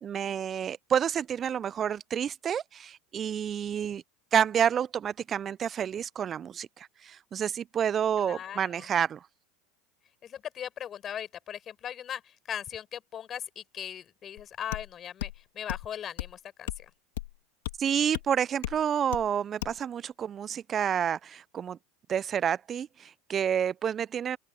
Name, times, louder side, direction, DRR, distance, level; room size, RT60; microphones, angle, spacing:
voice 1, 0.0-4.0 4.3-9.2 17.8-21.8 22.1-24.4, right 8 dB, 35° right, 0.9 m, -29 dB
voice 2, 8.2-8.9 10.2-16.9, left 9 dB, 35° left, 5.9 m, -39 dB
sound 1, 14.4-14.5 14.7-14.9 15.2-15.4 15.7-15.9 16.2-16.3 16.7-16.8 17.2-17.3 17.7-17.8 18.1-18.3 18.6-18.8 19.1-19.3 19.6-19.8, left 16 dB, 70° left, 2.5 m, -35 dB
open air
hypercardioid pair, 85°, 0 cm